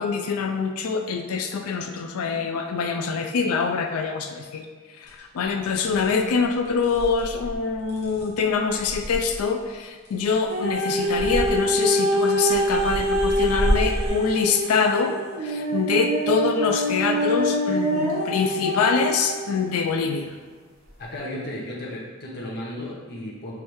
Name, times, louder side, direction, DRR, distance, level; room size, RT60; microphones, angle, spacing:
voice 1, 0.0-4.7 4.9-20.3, left 5 dB, 70° left, 6 dB, 0.4 m, -25 dB
sound 1, 5.1-5.2 5.7-6.2 6.6-9.5 10.0-10.7 11.0-11.6 12.2-14.1, equal, 30° left, 1.1 m, -29 dB
sound 2, 10.5-19.6 20.3-20.4, right 1 dB, 65° right, 1.1 m, -25 dB
voice 2, 21.0-23.6, left 1 dB, 45° left, -3 dB, 0.7 m, -34 dB
4.9 x 3.2 x 3.0 m, 1.5 s
head